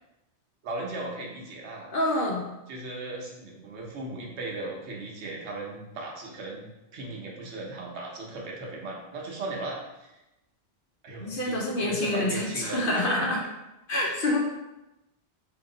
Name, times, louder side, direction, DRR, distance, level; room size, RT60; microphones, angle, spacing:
voice 1, 0.6-1.9 2.7-10.1 11.0-13.3, right 2 dB, 80° right, -1 dB, 1.0 m, -37 dB
voice 2, 1.9-2.5 11.2-13.4 13.9-14.4, left 1 dB, 60° left, -2 dB, 0.7 m, -27 dB
2.9 x 2.7 x 3.7 m, 0.96 s
omnidirectional pair, 1.1 m